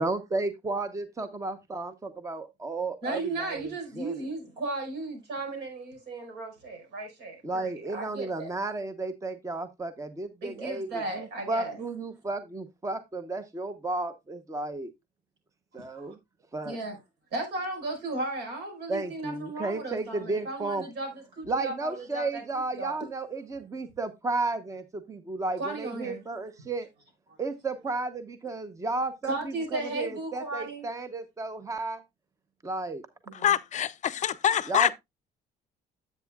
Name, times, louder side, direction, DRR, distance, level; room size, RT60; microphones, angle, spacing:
voice 1, 0.0-3.7 3.9-4.3 7.4-14.9 15.7-16.1 16.5-16.8 18.9-20.8 21.5-26.9 27.4-32.0 32.6-33.0 34.7-34.9, right 3 dB, 20° right, 0.9 m, -33 dB
voice 2, 3.0-8.5 10.4-11.8 15.8-16.1 16.6-17.0 17.3-22.4 22.7-23.0 25.6-26.2 29.2-30.8 33.3-33.5, right 2 dB, 80° right, 5.1 m, -35 dB
voice 3, 33.4-34.9, left 10 dB, 45° left, 0.5 m, -25 dB
10.0 x 8.1 x 2.3 m
cardioid pair, 110°, 17 cm